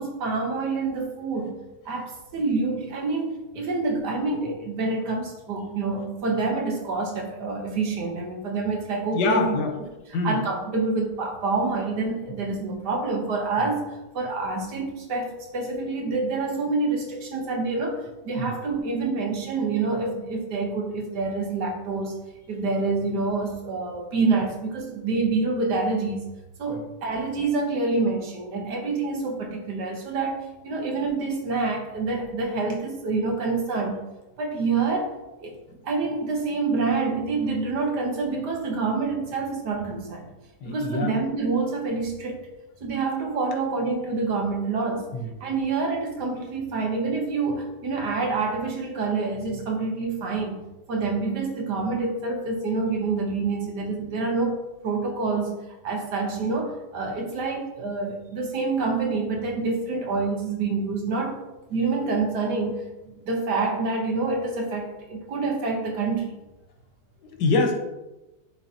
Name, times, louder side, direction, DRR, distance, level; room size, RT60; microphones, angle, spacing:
voice 1, 0.0-1.5 1.8-9.5 10.2-13.9 14.1-22.2 22.5-26.2 26.6-30.4 30.6-34.0 34.4-35.1 35.4-35.6 35.8-40.3 40.7-42.4 42.8-45.1 45.4-50.6 50.9-55.6 55.8-61.4 61.7-66.4, right 3 dB, 80° right, 2 dB, 1.7 m, -27 dB
voice 2, 9.1-9.7 10.1-10.4 13.6-13.7 18.4-18.5 26.7-26.8 40.6-41.1 45.1-45.3 67.2-67.7, left 3 dB, 90° left, 3 dB, 1.6 m, -25 dB
11.0 x 3.9 x 2.8 m, 1.0 s
omnidirectional pair, 1.8 m